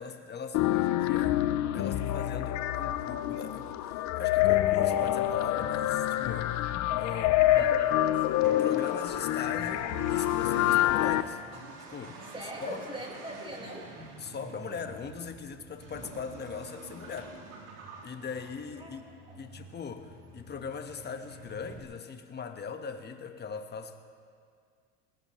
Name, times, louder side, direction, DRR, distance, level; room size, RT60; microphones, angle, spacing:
voice 1, 0.0-1.4 1.7-7.8 8.5-11.4 11.9-12.9 14.2-17.4 18.0-19.0 19.4-24.0, left 6 dB, 30° left, 7 dB, 1.4 m, -40 dB
sound 1, 0.5-11.2, left 13 dB, 50° left, 0.8 m, -27 dB
voice 2, 7.3-8.2 12.3-13.9 18.8-19.0 19.3-19.4, right 1 dB, 15° right, -1 dB, 4.9 m, -41 dB
Accelerating revving vroom, 8.3-21.8, right 3 dB, 60° right, 4.0 m, -47 dB
20.5 x 19.0 x 3.2 m, 2.2 s
supercardioid pair, 95°, 36 cm